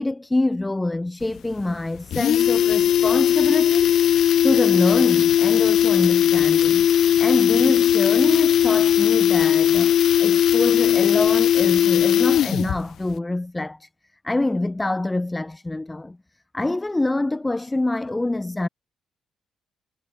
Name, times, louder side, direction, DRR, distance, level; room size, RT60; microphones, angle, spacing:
voice 1, 0.0-3.9 4.4-13.9 14.2-16.2 16.5-18.7, left 2 dB, 15° left, 4.6 m, -25 dB
sound 1, 1.2-1.3 1.6-1.7 2.0-12.8 13.1-13.2, left 10 dB, 70° left, 1.4 m, -18 dB
cardioid pair, 90°, 0 cm